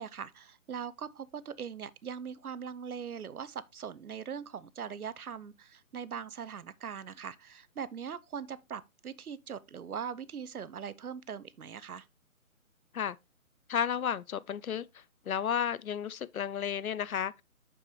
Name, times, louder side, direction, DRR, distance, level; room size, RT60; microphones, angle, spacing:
voice 1, 0.0-12.1, right 7 dB, 85° right, 0.7 m, -41 dB
voice 2, 13.7-17.4, left 8 dB, 75° left, 0.6 m, -33 dB
7.0 x 5.5 x 3.2 m
figure-of-eight pair, 150°, 43 cm